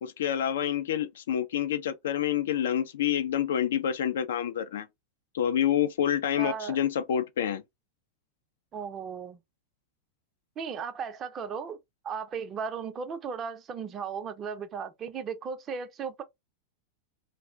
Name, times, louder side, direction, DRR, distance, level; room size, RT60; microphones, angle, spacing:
voice 1, 0.0-4.9 5.3-7.6, left 9 dB, 60° left, 0.4 m, -28 dB
voice 2, 6.4-6.8 8.7-9.4 10.6-11.8 12.0-16.2, right 6 dB, 25° right, 0.5 m, -36 dB
2.4 x 2.0 x 3.4 m
figure-of-eight pair, 90°, 0 cm